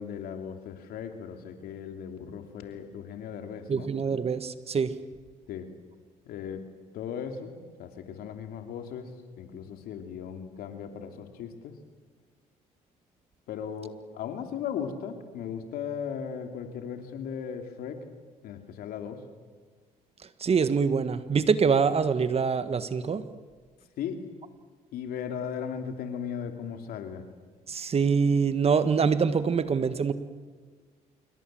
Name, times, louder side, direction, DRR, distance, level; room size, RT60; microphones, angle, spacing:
voice 1, 0.0-3.9 5.5-5.7 6.3-6.7 6.9-7.5 7.8-11.7 13.5-18.0 18.4-19.2 24.0-24.3 24.9-27.3, left 7 dB, 80° left, 6 dB, 3.0 m, -37 dB
voice 2, 3.7-4.9 20.4-23.2 27.7-30.1, right 5 dB, 40° right, 12 dB, 1.6 m, -24 dB
26.5 x 23.5 x 7.7 m, 1.5 s
supercardioid pair, 75°, 15 cm